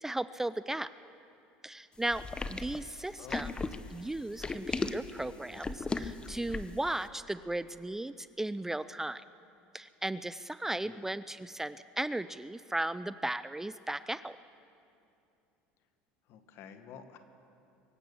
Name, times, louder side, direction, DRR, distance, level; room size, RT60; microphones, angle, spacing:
voice 1, 0.0-0.9 1.6-2.2 2.5-3.5 3.9-9.2 9.7-14.4, right 1 dB, 10° right, 15 dB, 0.3 m, -36 dB
sound 1, 2.1-6.9, left 3 dB, 20° left, 0.7 m, -36 dB
voice 2, 10.8-11.1 16.3-17.2, left 8 dB, 60° left, 8 dB, 1.4 m, -50 dB
23.5 x 8.5 x 6.9 m, 2.7 s
supercardioid pair, 100°, 5 cm